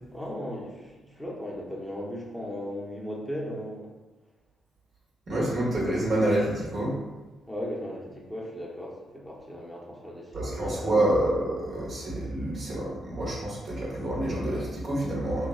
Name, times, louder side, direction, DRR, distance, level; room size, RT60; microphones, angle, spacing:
voice 1, 0.1-3.9 5.7-5.9 7.5-10.9, equal, 5° left, -5 dB, 0.8 m, -37 dB
voice 2, 5.3-6.9 10.3-15.5, right 1 dB, 55° right, -5 dB, 1.0 m, -27 dB
3.0 x 2.2 x 2.3 m, 1.2 s
hypercardioid pair, 45°, 0 cm